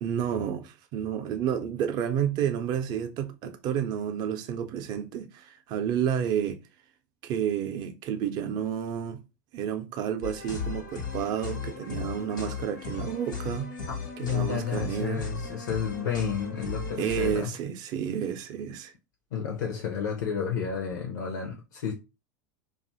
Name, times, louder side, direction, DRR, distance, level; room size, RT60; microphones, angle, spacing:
voice 1, 0.0-6.6 7.2-9.2 9.5-13.7 14.2-15.3 17.0-18.9, right 9 dB, 45° right, 0.5 m, -30 dB
sound 1, 10.2-17.4, left 4 dB, 85° left, 1.2 m, -36 dB
voice 2, 13.9-17.5 19.3-21.9, left 7 dB, 65° left, 0.6 m, -31 dB
2.6 x 2.4 x 2.5 m
hypercardioid pair, 90°, 10 cm